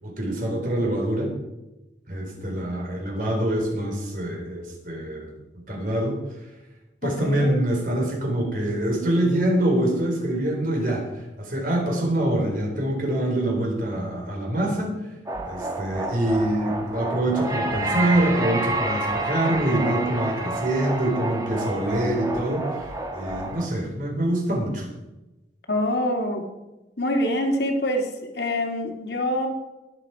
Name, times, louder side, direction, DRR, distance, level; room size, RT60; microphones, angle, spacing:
voice 1, 0.0-1.3 2.1-5.3 5.7-6.2 7.0-14.9 15.5-24.9, right 1 dB, 50° right, 0 dB, 4.4 m, -25 dB
voice 2, 7.0-7.6 25.7-26.4 27.0-28.1 28.3-29.5, left 1 dB, 70° left, 2 dB, 2.5 m, -25 dB
sound 1, 15.3-23.7, right 2 dB, 20° right, 1.5 m, -29 dB
21.0 x 7.7 x 5.0 m, 1.0 s
head